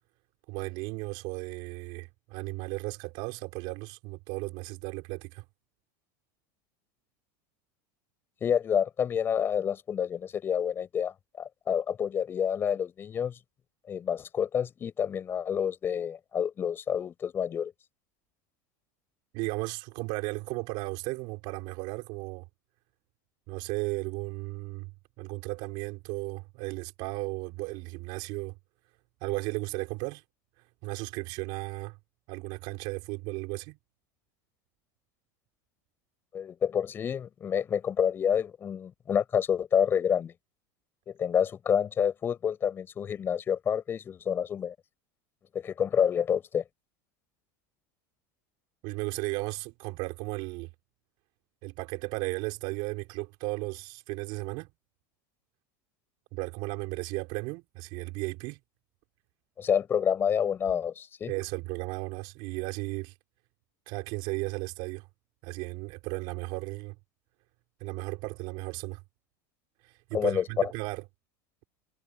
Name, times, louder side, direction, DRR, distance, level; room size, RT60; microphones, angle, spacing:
voice 1, 0.5-5.4 19.3-22.4 23.5-24.9 25.2-28.5 29.2-30.2 30.8-32.0 32.3-33.8 48.8-50.7 51.6-54.7 56.3-58.6 61.3-63.1 63.9-65.1 65.4-66.9 67.8-69.0 70.1-71.0, right 24 dB, 50° right, 5.5 m, -35 dB
voice 2, 8.4-13.4 13.9-17.7 36.3-40.3 41.1-44.7 45.5-46.6 59.6-61.3 70.1-70.7, left 8 dB, 20° left, 6.6 m, -28 dB
supercardioid pair, 160°, 10 cm